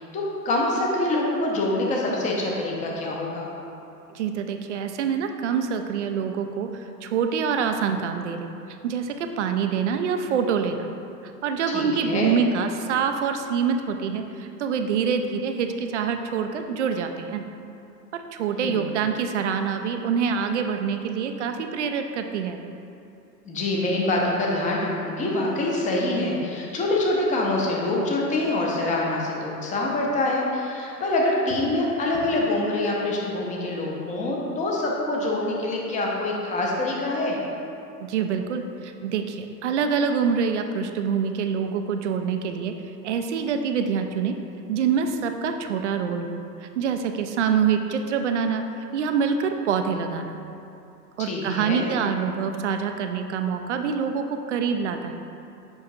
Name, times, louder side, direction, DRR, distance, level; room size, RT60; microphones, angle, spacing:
voice 1, 0.0-3.5 11.7-12.4 18.5-18.9 23.4-37.4 51.2-51.9, left 2 dB, 15° left, -2 dB, 0.7 m, -25 dB
voice 2, 4.1-8.5 8.8-10.9 11.2-17.4 18.1-22.6 38.0-42.7 43.0-44.3 44.7-48.6 48.9-50.4 51.2-55.1, right 6 dB, 45° right, 6 dB, 0.5 m, -26 dB
7.0 x 5.5 x 2.6 m, 2.7 s
figure-of-eight pair, 100°, 50 cm